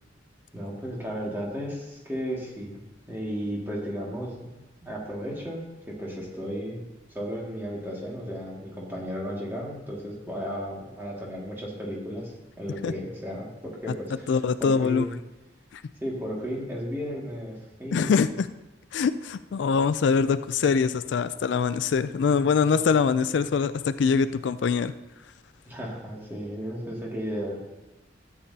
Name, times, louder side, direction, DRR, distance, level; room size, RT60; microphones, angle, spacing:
voice 1, 0.5-2.8 3.1-4.5 4.8-6.8 7.1-12.3 12.6-14.3 14.6-15.1 16.0-18.1 25.6-27.6, equal, 10° right, -4 dB, 2.1 m, -34 dB
voice 2, 14.3-15.1 15.7-15.8 17.9-18.5 18.9-24.9, left 5 dB, 70° left, 13 dB, 0.3 m, -23 dB
13.5 x 8.6 x 2.8 m, 1.1 s
head